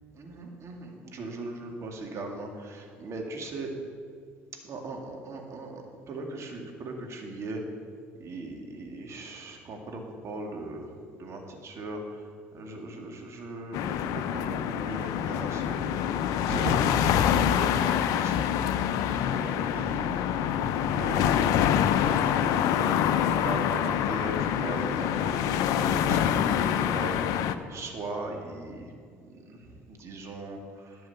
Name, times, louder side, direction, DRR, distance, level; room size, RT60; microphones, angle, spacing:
voice 1, 0.1-3.7 4.6-7.6 8.2-10.9 11.2-16.1 16.4-18.9 19.3-26.7 26.9-28.9 29.2-31.1, right 2 dB, 45° right, 2 dB, 2.2 m, -38 dB
sound 1, 13.7-27.5, left 9 dB, 65° left, 0.6 m, -26 dB
11.0 x 6.9 x 7.0 m, 2.2 s
hypercardioid pair, 65°, 7 cm